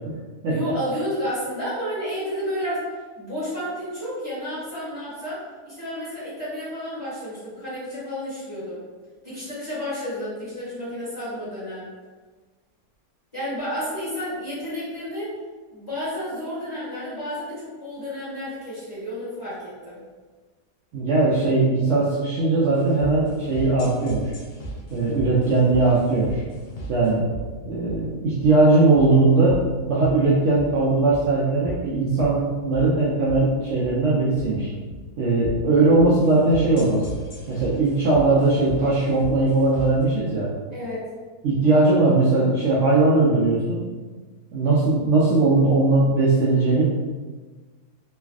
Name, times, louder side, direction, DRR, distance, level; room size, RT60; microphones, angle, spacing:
voice 1, 0.5-2.8 3.2-8.8 9.2-11.9 13.3-15.3 15.7-20.0 40.7-41.1, equal, 15° left, -12 dB, 1.4 m, -31 dB
voice 2, 20.9-24.3 24.9-26.4 26.9-27.2 27.6-29.6 29.9-34.7 35.2-37.0 37.5-40.5 41.4-43.8 44.5-46.8, right 3 dB, 65° right, -7 dB, 0.8 m, -19 dB
sound 1, 22.7-40.0, right 1 dB, 55° left, 0.7 m, -38 dB
3.2 x 2.4 x 2.3 m, 1.4 s
omnidirectional pair, 1.5 m